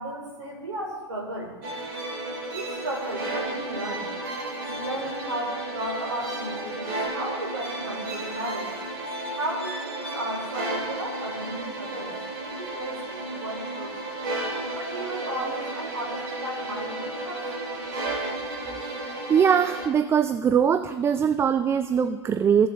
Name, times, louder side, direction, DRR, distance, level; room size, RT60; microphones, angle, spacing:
voice 1, 0.0-1.5 2.5-4.1 4.7-8.7 9.4-14.1 14.7-17.5, right 1 dB, 85° right, -2 dB, 1.9 m, -34 dB
sound 1, 1.6-19.9, right 2 dB, 60° right, 2.9 m, -33 dB
voice 2, 19.3-22.7, right 7 dB, 15° right, 11 dB, 0.3 m, -22 dB
16.0 x 6.9 x 2.5 m, 1.3 s
hypercardioid pair, 100°, 15 cm